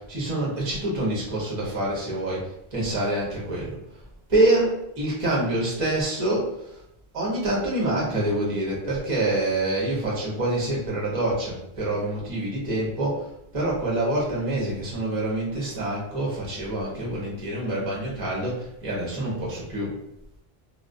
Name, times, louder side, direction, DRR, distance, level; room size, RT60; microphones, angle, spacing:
voice 1, 0.0-4.0 4.3-6.8 7.1-19.9, right 1 dB, 35° right, -5 dB, 0.8 m, -26 dB
2.3 x 2.2 x 2.5 m, 0.79 s
omnidirectional pair, 1.0 m